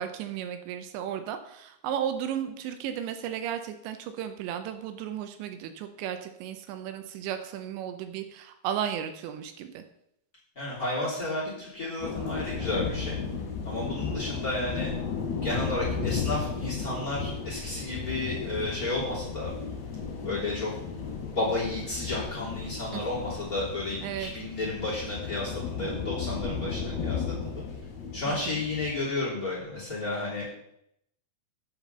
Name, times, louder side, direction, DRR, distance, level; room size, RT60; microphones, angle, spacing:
voice 1, 0.0-9.8 22.9-23.0 24.0-24.3 28.3-28.6, right 9 dB, 80° right, 8 dB, 2.9 m, -34 dB
voice 2, 10.5-13.2 13.6-14.9 15.4-19.5 20.2-20.7 21.3-27.6 28.1-30.4, left 2 dB, 20° left, -5 dB, 3.0 m, -32 dB
sound 1, 12.0-29.0, left 5 dB, 45° left, 4.1 m, -34 dB
8.8 x 5.8 x 6.8 m, 0.77 s
omnidirectional pair, 5.2 m